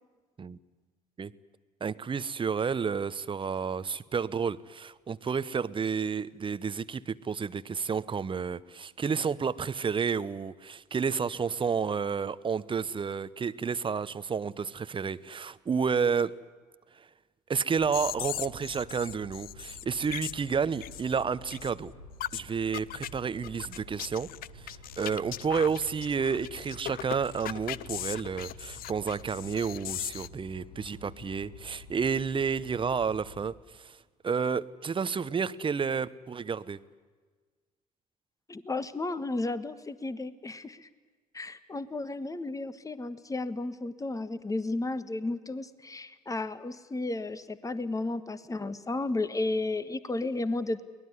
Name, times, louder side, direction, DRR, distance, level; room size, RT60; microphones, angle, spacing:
voice 1, 1.8-16.3 17.5-21.9 22.3-24.3 24.5-34.0 34.2-36.8, right 6 dB, 25° right, 16 dB, 0.9 m, -31 dB
sound 1, 17.7-33.5, left 1 dB, 85° left, 1.7 m, -50 dB
sound 2, 17.9-21.2 21.5-21.7 22.2-22.4 22.7-23.1 23.4-30.3, left 13 dB, 50° left, 0.7 m, -38 dB
voice 2, 38.5-40.9 41.3-50.8, left 2 dB, 15° left, 14 dB, 1.5 m, -33 dB
24.0 x 19.5 x 9.6 m, 1.4 s
figure-of-eight pair, 55°, 19 cm